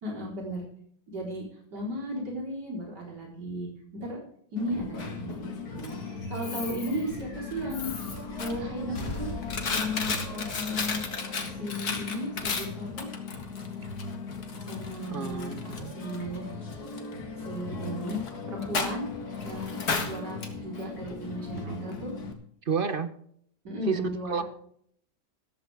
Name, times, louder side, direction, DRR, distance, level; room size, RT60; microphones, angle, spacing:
voice 1, 0.0-0.7 1.1-1.4 1.7-4.2 4.5-6.0 6.3-9.3 9.7-11.0 11.6-13.1 14.6-16.4 17.5-18.2 18.5-19.1 19.4-22.1 23.6-24.4, equal, 80° right, -1 dB, 4.8 m, -35 dB
Coin (dropping), 4.6-22.3, left 4 dB, 65° left, 2.4 m, -35 dB
sound 1, 6.2-11.9, left 2 dB, 90° left, 3.6 m, -43 dB
voice 2, 15.1-15.9 22.6-23.1 23.9-24.4, right 6 dB, 40° right, 11 dB, 1.0 m, -30 dB
14.5 x 14.0 x 3.5 m, 0.64 s
omnidirectional pair, 1.8 m